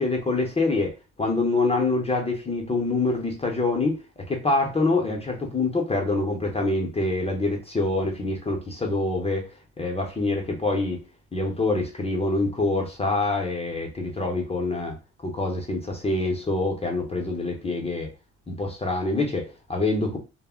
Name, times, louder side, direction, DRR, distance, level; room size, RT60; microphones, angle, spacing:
voice 1, 0.0-9.4 9.8-11.0 11.3-14.9 15.2-18.1 18.5-20.2, left 2 dB, 20° left, 0.6 m, -25 dB
2.0 x 2.0 x 3.6 m
cardioid pair, 90°, 30 cm